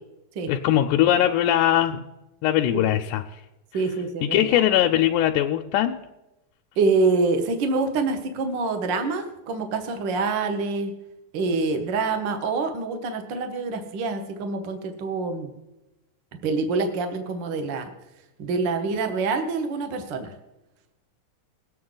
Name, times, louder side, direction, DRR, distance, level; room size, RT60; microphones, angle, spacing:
voice 1, 0.5-2.0 2.4-3.2 4.2-6.0, left 12 dB, 85° left, 3 dB, 2.1 m, -20 dB
voice 2, 3.7-4.6 6.8-10.9 11.3-15.5 16.4-17.9 18.4-20.3, right 3 dB, 60° right, 6 dB, 1.2 m, -26 dB
20.0 x 8.6 x 3.9 m, 0.97 s
omnidirectional pair, 3.6 m